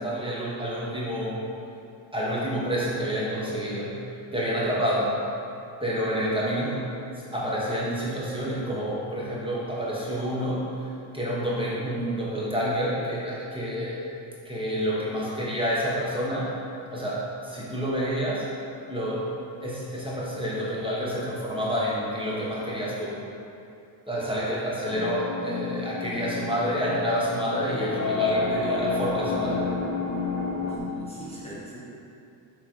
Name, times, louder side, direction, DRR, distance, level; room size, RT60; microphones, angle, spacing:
voice 1, 0.0-1.4 2.1-3.9 4.3-5.1 5.8-6.8 7.2-10.6 11.1-14.1 14.4-16.5 16.9-18.5 18.9-19.3 19.6-23.1 24.1-29.7, equal, 10° right, -7 dB, 1.1 m, -28 dB
voice 2, 24.1-24.4 30.7-31.8, equal, 10° left, -8 dB, 1.0 m, -42 dB
sound 1, 24.9-30.8, left 4 dB, 35° left, 1.0 m, -30 dB
6.8 x 3.8 x 4.5 m, 2.6 s
cardioid pair, 125°, 49 cm